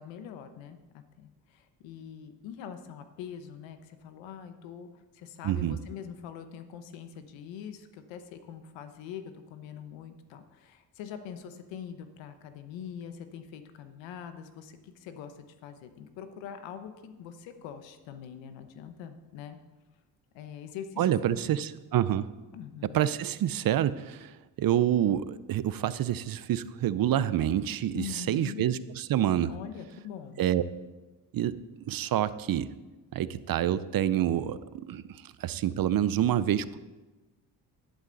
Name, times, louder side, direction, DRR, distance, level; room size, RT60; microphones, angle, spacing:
voice 1, 0.0-19.6 20.3-21.7 22.5-23.0 27.9-28.6 29.5-30.4, left 8 dB, 90° left, 9 dB, 1.1 m, -43 dB
voice 2, 5.4-5.8 21.0-22.3 22.9-24.3 24.6-29.5 30.4-30.6 31.3-32.7 33.1-36.8, right 11 dB, 55° right, 16 dB, 0.6 m, -27 dB
11.0 x 11.0 x 4.0 m, 1.2 s
supercardioid pair, 70°, 43 cm